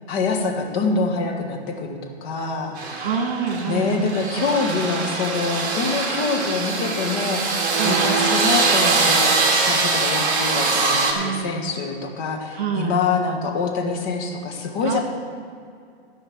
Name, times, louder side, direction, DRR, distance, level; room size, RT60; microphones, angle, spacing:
voice 1, 0.1-3.1 3.7-7.6 7.8-9.4 9.7-15.0, left 4 dB, 30° left, 1 dB, 1.6 m, -25 dB
sound 1, 2.8-11.1, right 4 dB, 25° right, 1.9 m, -22 dB
voice 2, 3.0-4.1 4.3-4.8 7.7-8.0 11.1-11.7 12.5-13.0 14.8-15.0, right 6 dB, 50° right, 3 dB, 2.1 m, -27 dB
13.0 x 5.6 x 7.6 m, 2.3 s
hypercardioid pair, 125°, 33 cm